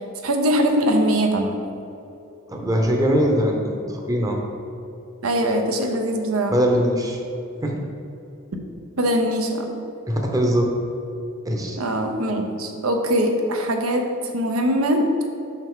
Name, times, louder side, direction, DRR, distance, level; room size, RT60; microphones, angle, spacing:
voice 1, 0.2-1.6 5.2-6.5 9.0-9.7 11.8-14.1 14.3-15.0, equal, 90° right, 4 dB, 0.8 m, -22 dB
voice 2, 2.5-4.4 6.5-7.2 7.6-7.7 10.1-10.7 11.5-11.8, equal, 15° right, 1 dB, 0.7 m, -21 dB
5.9 x 5.6 x 3.7 m, 2.8 s
head